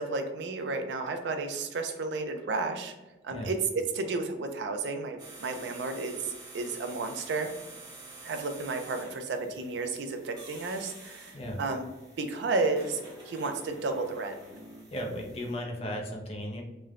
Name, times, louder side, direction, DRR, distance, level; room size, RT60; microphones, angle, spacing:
voice 1, 0.0-2.9 3.2-7.5 8.2-11.9 12.2-14.3, right 3 dB, 80° right, 6 dB, 0.4 m, -32 dB
sound 1, 5.2-15.5, right 2 dB, 25° right, 0.6 m, -49 dB
voice 2, 14.9-16.6, equal, 35° left, 1 dB, 0.4 m, -35 dB
3.1 x 2.0 x 2.3 m, 1.0 s
head